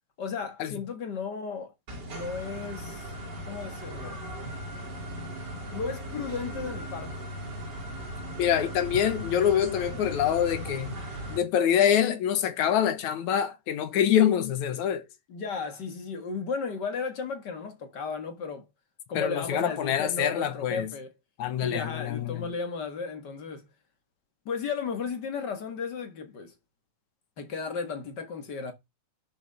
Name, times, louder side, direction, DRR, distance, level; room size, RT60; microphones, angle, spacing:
voice 1, 0.2-1.7 2.1-3.1 3.4-4.2 5.7-7.3 15.3-18.7 19.1-21.1 21.6-23.7 24.4-26.5 27.4-28.7, left 5 dB, 40° left, 1.7 m, -34 dB
sound 1, 1.9-11.4, equal, 30° right, 3.1 m, -38 dB
voice 2, 8.4-11.0 11.3-15.0 19.1-20.9 21.4-22.5, left 9 dB, 70° left, 2.3 m, -25 dB
12.0 x 7.0 x 3.5 m
omnidirectional pair, 3.8 m